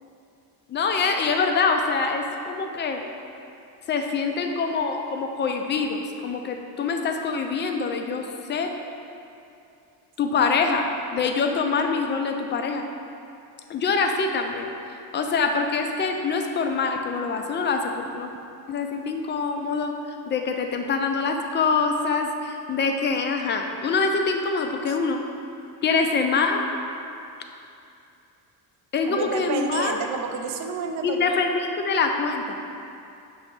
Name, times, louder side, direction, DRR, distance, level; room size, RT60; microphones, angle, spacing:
voice 1, 0.7-3.0 3.9-8.7 10.2-12.8 13.7-14.7 15.1-18.3 18.7-19.9 20.3-25.2 25.8-26.6 28.9-30.0 31.0-31.5 31.8-32.6, left 4 dB, 25° left, 4 dB, 0.3 m, -25 dB
voice 2, 29.0-31.3, right 6 dB, 40° right, 4 dB, 0.4 m, -30 dB
6.9 x 3.1 x 5.1 m, 2.6 s
cardioid pair, 140°, 45 cm